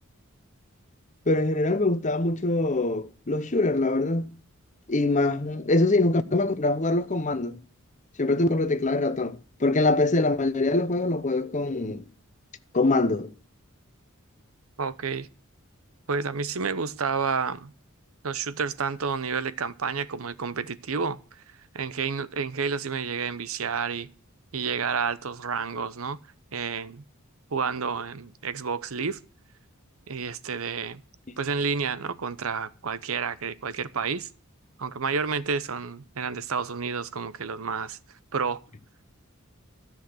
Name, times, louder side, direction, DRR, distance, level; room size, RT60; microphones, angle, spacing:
voice 1, 1.3-4.3 4.9-7.6 8.2-12.0 12.7-13.3, left 2 dB, 35° left, 0.9 m, -24 dB
voice 2, 14.8-15.3 16.1-17.7 18.2-21.2 21.7-24.1 24.5-26.2 26.5-27.0 27.5-29.2 30.1-31.0 31.4-34.3 34.8-38.0 38.3-38.6, right 5 dB, 75° right, 0.8 m, -30 dB
13.0 x 6.4 x 7.7 m
head